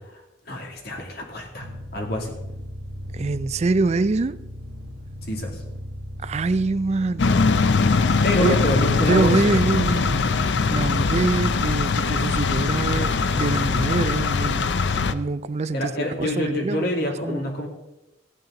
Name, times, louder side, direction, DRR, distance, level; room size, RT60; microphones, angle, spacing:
voice 1, 0.5-1.7 1.9-2.3 5.3-5.6 8.2-9.3 15.7-17.7, left 1 dB, 60° left, 2.5 m, -26 dB
sound 1, 1.6-11.0, left 1 dB, 65° right, 1.3 m, -37 dB
voice 2, 3.1-4.5 6.2-7.4 8.4-8.6 9.1-10.2 10.7-14.7 15.1-16.9 17.3-17.4, right 3 dB, 40° right, 0.4 m, -24 dB
sound 2, 7.2-15.1, left 4 dB, 75° left, 0.6 m, -21 dB
15.0 x 8.9 x 3.8 m
head